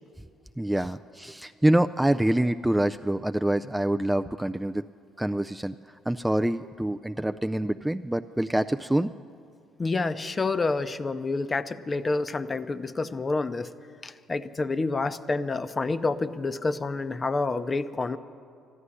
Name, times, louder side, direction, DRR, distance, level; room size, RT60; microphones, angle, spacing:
voice 1, 0.6-4.8 5.2-5.8 6.1-9.1, right 1 dB, 5° right, 9 dB, 0.3 m, -26 dB
voice 2, 9.8-13.7 14.0-18.2, left 3 dB, 30° left, 12 dB, 0.7 m, -28 dB
13.0 x 11.5 x 9.8 m, 2.3 s
supercardioid pair, 75°, 0 cm